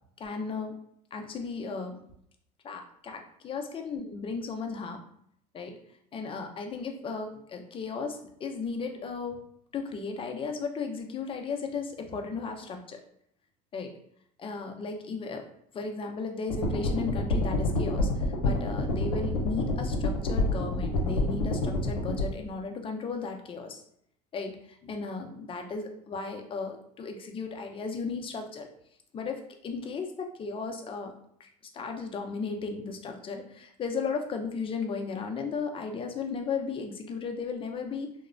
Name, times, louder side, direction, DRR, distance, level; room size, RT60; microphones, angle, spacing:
voice 1, 0.2-0.7 1.1-2.0 2.6-5.0 5.5-5.8 6.1-9.4 9.7-13.0 13.7-13.9 14.4-15.4 15.7-23.8 24.3-28.7 29.1-31.1 31.4-31.5 31.7-38.1, left 4 dB, 30° left, 4 dB, 0.5 m, -35 dB
sound 1, 16.5-22.2, left 2 dB, 90° left, 0.7 m, -28 dB
2.9 x 2.0 x 2.5 m, 0.69 s
supercardioid pair, 100°, 19 cm